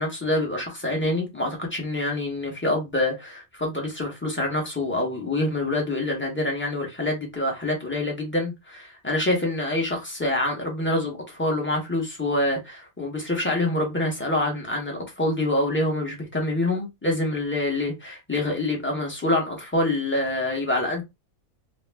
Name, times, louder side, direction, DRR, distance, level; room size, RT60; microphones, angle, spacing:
voice 1, 0.0-21.0, left 1 dB, 15° left, 0.5 m, -26 dB
2.5 x 2.0 x 3.3 m
omnidirectional pair, 1.5 m